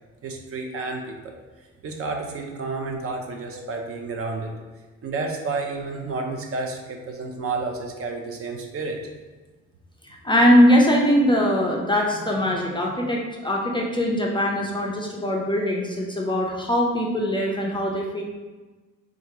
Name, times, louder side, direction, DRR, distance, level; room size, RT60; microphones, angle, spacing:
voice 1, 0.2-4.5 5.0-9.0, right 3 dB, 45° right, 2 dB, 0.6 m, -31 dB
voice 2, 10.2-18.2, equal, 15° left, -1 dB, 0.4 m, -21 dB
3.4 x 2.4 x 2.9 m, 1.2 s
supercardioid pair, 80°, 33 cm